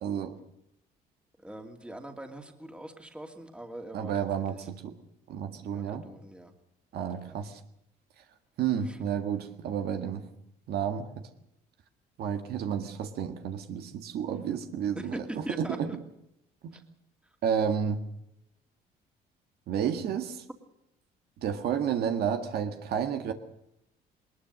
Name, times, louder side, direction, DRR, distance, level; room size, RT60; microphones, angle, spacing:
voice 1, 0.0-0.4 3.9-4.9 5.3-6.1 6.9-7.6 8.6-10.3 10.7-11.3 12.2-15.9 17.4-18.0 19.7-20.4 21.4-23.3, right 8 dB, 70° right, 6 dB, 1.8 m, -31 dB
voice 2, 1.4-4.6 5.7-6.5 7.3-7.4 8.9-9.0 14.9-16.0 16.7-16.8, right 1 dB, 5° right, 4 dB, 2.6 m, -42 dB
20.5 x 20.5 x 6.5 m, 0.79 s
cardioid pair, 110°, 17 cm